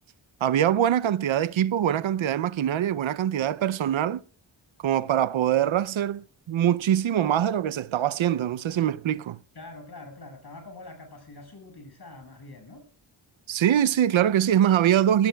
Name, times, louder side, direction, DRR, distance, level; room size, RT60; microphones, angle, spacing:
voice 1, 0.4-4.2 4.8-9.4 13.5-15.3, right 10 dB, 85° right, 0.6 m, -23 dB
voice 2, 9.5-12.9, left 2 dB, 55° left, 6.4 m, -44 dB
23.0 x 18.0 x 2.3 m
wide cardioid pair, 95°, 45 cm